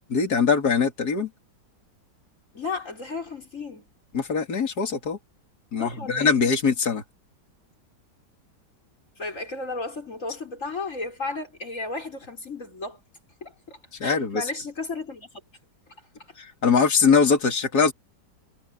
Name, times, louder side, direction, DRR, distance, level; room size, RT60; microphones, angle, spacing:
voice 1, 0.1-1.3 4.1-5.2 5.7-7.0 14.0-14.4 16.4-17.9, left 5 dB, 60° left, 3.4 m, -22 dB
voice 2, 2.5-3.9 5.8-6.3 9.2-13.0 13.4-15.3, left 3 dB, 45° left, 6.3 m, -34 dB
omnidirectional pair, 1.9 m